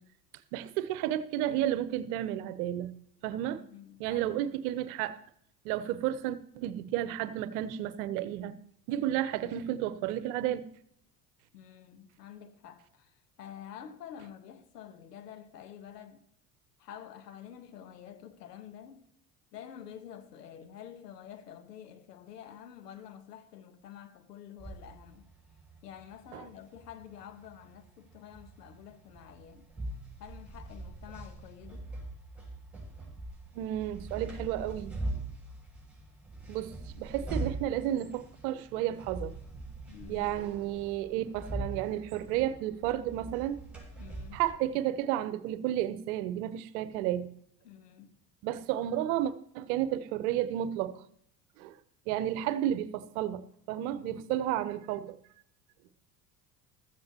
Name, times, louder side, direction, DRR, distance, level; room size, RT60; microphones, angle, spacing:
voice 1, 0.5-2.9 3.2-3.6 4.0-5.2 5.6-8.5 8.9-10.7 26.3-26.4 33.5-35.0 36.5-39.3 40.1-43.6 44.3-47.3 48.4-51.0 51.6-51.8 52.1-55.2, right 12 dB, 65° right, 1.0 m, -32 dB
voice 2, 3.5-4.6 11.5-16.2 16.8-19.0 19.5-25.3 25.8-29.7 30.2-31.9 39.9-40.3 44.0-44.4 47.6-48.2 53.9-54.3, left 9 dB, 80° left, 1.5 m, -49 dB
sound 1, 24.6-44.5, right 2 dB, ahead, 6.5 m, -42 dB
15.0 x 13.5 x 2.9 m
hypercardioid pair, 65°, 48 cm